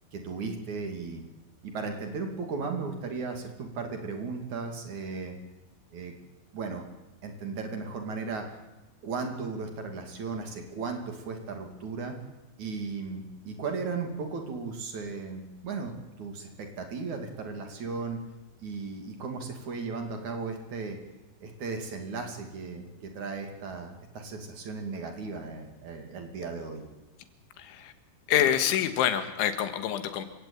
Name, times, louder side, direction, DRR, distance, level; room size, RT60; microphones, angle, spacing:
voice 1, 0.1-1.2 1.6-5.4 5.9-6.1 6.5-6.8 7.2-8.5 9.0-12.1 12.6-18.2 18.6-21.0 21.4-26.9, right 4 dB, 45° right, 4 dB, 3.5 m, -36 dB
voice 2, 27.6-27.9 28.3-30.3, left 10 dB, 85° left, 9 dB, 3.9 m, -26 dB
28.5 x 17.0 x 8.8 m, 1.1 s
omnidirectional pair, 5.4 m